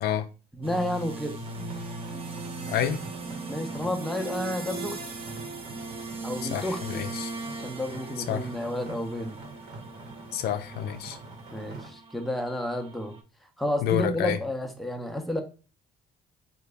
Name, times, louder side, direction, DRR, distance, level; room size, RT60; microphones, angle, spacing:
voice 1, 0.5-1.4 3.5-5.0 6.2-7.1 7.6-9.4 11.5-13.2 13.6-15.4, left 1 dB, ahead, 0.6 m, -31 dB
sound 1, 0.6-13.2, right 3 dB, 35° right, 0.8 m, -39 dB
sound 2, 1.4-11.9, right 3 dB, 70° right, 1.2 m, -45 dB
voice 2, 2.7-3.0 6.5-7.3 8.3-8.5 10.3-11.2 13.8-14.4, left 9 dB, 70° left, 0.4 m, -28 dB
3.3 x 2.4 x 3.3 m
cardioid pair, 110°, 17 cm